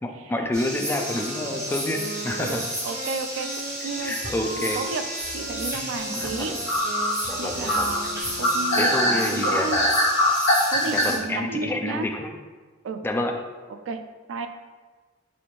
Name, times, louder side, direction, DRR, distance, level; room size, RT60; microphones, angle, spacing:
voice 1, 0.0-2.6 4.0-4.8 6.1-6.6 7.3-7.9 8.8-9.9 10.9-12.3 13.0-13.3, left 1 dB, 10° left, 2 dB, 0.3 m, -29 dB
sound 1, 0.5-11.2, equal, 15° right, 0.9 m, -33 dB
Wind instrument woodwind instrument, 0.9-9.1, right 1 dB, 50° right, 0.7 m, -38 dB
voice 2, 2.4-6.6 7.4-9.8 10.7-12.1 12.8-13.0 13.9-14.0 14.3-14.5, right 4 dB, 75° right, 8 dB, 0.3 m, -32 dB
sound 2, 4.0-4.8 5.2-5.8 6.2-6.3 6.7-11.1, left 1 dB, 70° left, 1.0 m, -23 dB
4.1 x 3.3 x 3.1 m, 1.4 s
head